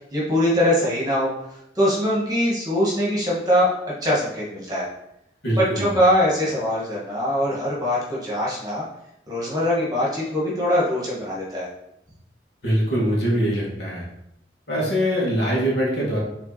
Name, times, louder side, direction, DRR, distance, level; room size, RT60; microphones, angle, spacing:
voice 1, 0.1-3.7 4.0-4.9 5.6-8.8 9.3-11.7, equal, 20° right, -6 dB, 1.9 m, -22 dB
voice 2, 5.4-5.9 12.6-14.1 14.7-16.2, equal, 65° left, -5 dB, 2.3 m, -23 dB
6.2 x 3.8 x 4.3 m, 0.81 s
head